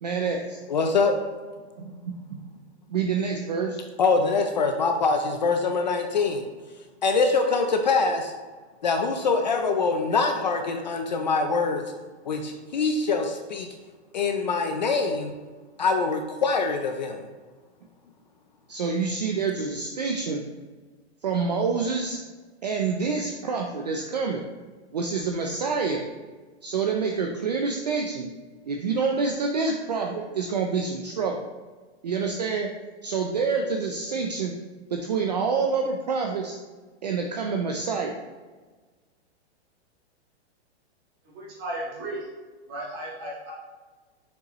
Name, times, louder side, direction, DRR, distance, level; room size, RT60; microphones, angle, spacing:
voice 1, 0.0-0.6 1.8-2.4 2.9-3.8 18.7-20.4 21.2-22.2 22.6-24.4 24.9-26.0 26.6-28.3 28.7-31.5 32.0-32.7 33.0-34.5 34.9-36.6 37.0-38.2, right 5 dB, 40° right, 2 dB, 0.4 m, -27 dB
voice 2, 0.7-1.2 4.0-6.5 7.0-8.3 8.8-11.8 12.2-13.7 14.1-15.3 15.8-17.2, left 4 dB, 40° left, 4 dB, 0.5 m, -24 dB
voice 3, 41.2-42.2 42.7-43.5, right 1 dB, 20° right, -5 dB, 1.6 m, -35 dB
6.7 x 5.3 x 3.0 m, 1.4 s
hypercardioid pair, 180°, 34 cm